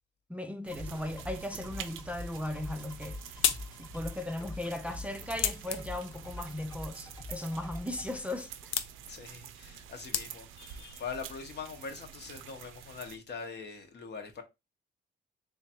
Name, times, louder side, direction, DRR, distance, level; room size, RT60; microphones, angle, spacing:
voice 1, 0.3-3.5 3.9-8.7, left 1 dB, 5° right, 0.4 m, -37 dB
sound 1, 0.6-13.2, right 9 dB, 90° right, 0.5 m, -48 dB
sound 2, 0.7-8.1, left 2 dB, 20° left, 0.9 m, -45 dB
sound 3, 2.7-10.7, left 9 dB, 85° left, 0.5 m, -38 dB
voice 2, 9.0-14.4, left 5 dB, 55° left, 1.0 m, -43 dB
3.6 x 3.2 x 2.8 m
cardioid pair, 90°, 20 cm